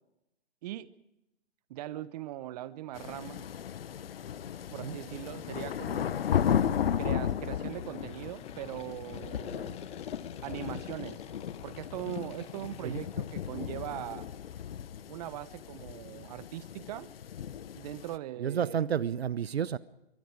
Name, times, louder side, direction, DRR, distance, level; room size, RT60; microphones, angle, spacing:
voice 1, 0.6-0.9 1.7-3.4 4.7-6.2 7.0-9.8 10.4-11.2 11.6-14.3 15.1-17.1 17.8-18.8, right 14 dB, 40° right, 16 dB, 1.1 m, -40 dB
sound 1, 2.9-18.2, left 9 dB, 65° left, 1.1 m, -35 dB
sound 2, 2.9-15.2, left 10 dB, 20° left, 1.6 m, -54 dB
voice 2, 18.4-19.8, right 8 dB, 70° right, 18 dB, 0.9 m, -31 dB
25.5 x 24.0 x 4.8 m, 0.89 s
hypercardioid pair, 130°, 32 cm